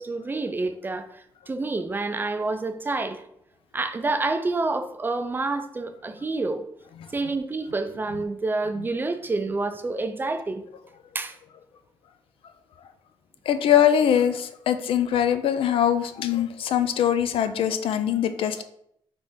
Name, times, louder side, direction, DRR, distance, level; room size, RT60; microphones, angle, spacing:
voice 1, 0.0-3.2 3.7-6.6 7.1-10.6 11.1-11.4, right 3 dB, 20° right, 9 dB, 0.4 m, -28 dB
voice 2, 13.5-18.6, left 9 dB, 80° left, 10 dB, 0.4 m, -22 dB
4.0 x 3.3 x 3.5 m, 0.72 s
cardioid pair, 120°, 9 cm